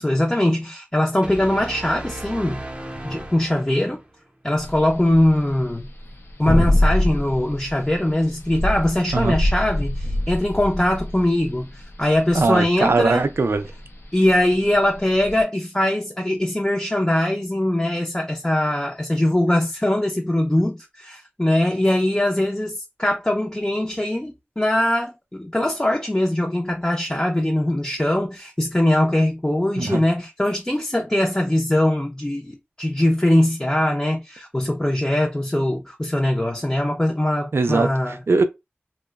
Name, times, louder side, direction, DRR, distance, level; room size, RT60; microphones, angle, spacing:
voice 1, 0.0-2.6 3.0-4.0 4.4-5.9 6.4-13.3 14.1-38.2, left 1 dB, 20° left, 0.5 m, -21 dB
sound 1, 1.2-4.1, right 1 dB, 25° right, 0.5 m, -35 dB
sound 2, 4.6-15.4, left 1 dB, 90° left, 0.5 m, -25 dB
voice 2, 12.3-13.7 29.8-30.0 37.5-38.4, right 3 dB, 75° right, 0.4 m, -20 dB
2.9 x 2.0 x 2.3 m
wide cardioid pair, 45°, 4 cm